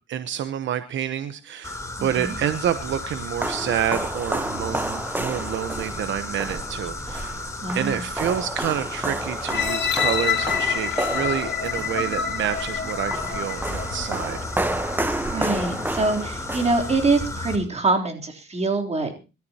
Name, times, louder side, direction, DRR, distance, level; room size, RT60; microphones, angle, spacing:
voice 1, 0.1-7.4 7.7-14.4, right 10 dB, 70° right, 10 dB, 1.0 m, -28 dB
sound 1, 1.6-17.6, left 2 dB, 15° left, 3.4 m, -34 dB
voice 2, 2.0-2.3 7.6-8.0 15.3-19.2, right 3 dB, 35° right, 2 dB, 3.4 m, -24 dB
sound 2, 2.7-17.4, right 1 dB, 10° right, 1.0 m, -31 dB
sound 3, 9.5-14.4 15.0-15.1, left 8 dB, 65° left, 2.2 m, -27 dB
24.0 x 13.0 x 2.9 m, 0.30 s
cardioid pair, 90°, 20 cm